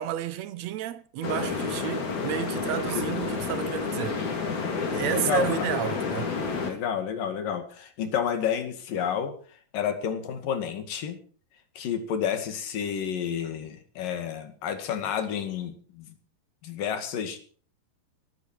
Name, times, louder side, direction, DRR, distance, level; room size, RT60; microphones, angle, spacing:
voice 1, 0.0-4.2 4.9-6.3, right 11 dB, 70° right, 1.7 m, -31 dB
sound 1, 1.2-6.7, left 4 dB, 60° left, 4.7 m, -30 dB
voice 2, 2.7-3.0 5.1-5.8 6.7-9.4 9.7-11.2 11.8-16.2 16.6-17.4, left 8 dB, 80° left, 3.9 m, -30 dB
17.5 x 15.0 x 4.6 m
omnidirectional pair, 3.8 m